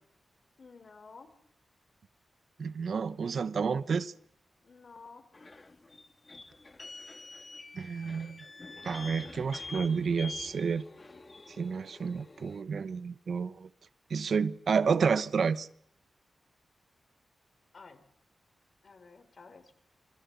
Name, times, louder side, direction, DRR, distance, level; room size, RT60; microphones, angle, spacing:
voice 1, 0.6-1.3 4.6-5.3 17.7-18.0 18.8-19.7, left 4 dB, 55° left, 4.0 m, -52 dB
voice 2, 2.6-4.1 7.7-8.4 8.8-10.8 11.6-13.7 14.1-15.7, right 5 dB, 70° right, 1.0 m, -30 dB
sound 1, 5.3-12.6, left 3 dB, 30° left, 2.2 m, -46 dB
27.0 x 21.0 x 6.9 m
wide cardioid pair, 100°, 0 cm